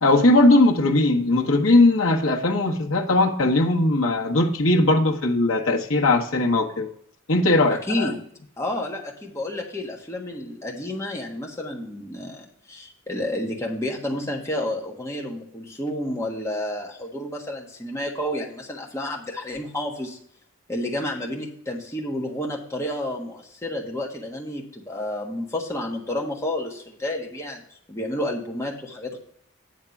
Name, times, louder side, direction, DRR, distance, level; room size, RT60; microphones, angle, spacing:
voice 1, 0.0-6.9 7.3-8.1, left 2 dB, 75° left, 0 dB, 1.1 m, -19 dB
voice 2, 7.7-8.2 8.6-20.2 20.7-27.6 27.9-29.2, left 1 dB, 15° left, -1 dB, 1.4 m, -30 dB
9.5 x 3.6 x 7.0 m, 0.67 s
head